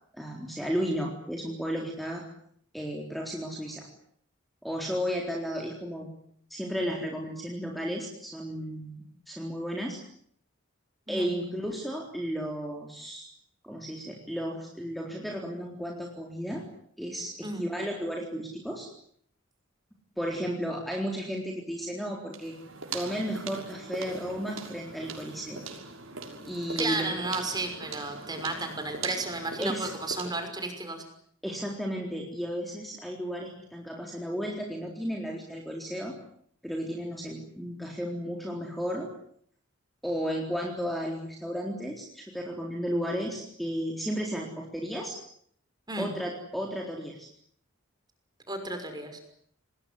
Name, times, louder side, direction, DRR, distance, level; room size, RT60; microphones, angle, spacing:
voice 1, 0.1-2.2 2.7-3.9 4.6-6.1 6.5-9.0 9.3-10.0 11.1-13.2 13.6-16.6 17.0-18.9 20.2-22.5 22.9-25.6 26.5-27.1 29.6-29.9 31.4-36.2 36.6-39.1 40.0-45.2 46.0-47.3, equal, ahead, 0 dB, 4.0 m, -33 dB
sound 1, 22.3-30.5, right 4 dB, 80° right, 6.2 m, -41 dB
voice 2, 26.8-31.0 45.9-46.1 48.5-49.2, right 2 dB, 20° right, 7 dB, 6.0 m, -33 dB
27.5 x 20.5 x 9.8 m, 0.66 s
head